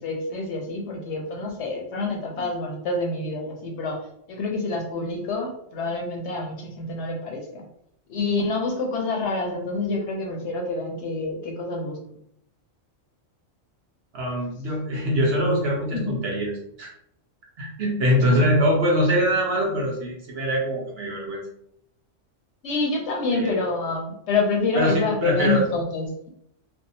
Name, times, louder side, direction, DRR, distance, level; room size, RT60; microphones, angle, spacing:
voice 1, 0.0-4.0 4.3-7.6 8.1-12.0 15.9-16.2 22.6-26.3, left 3 dB, 70° left, 1 dB, 0.8 m, -27 dB
voice 2, 14.1-16.5 16.8-16.9 17.6-21.4 23.3-23.6 24.8-25.6, equal, 60° right, -2 dB, 0.8 m, -23 dB
2.6 x 2.0 x 2.7 m, 0.72 s
omnidirectional pair, 1.3 m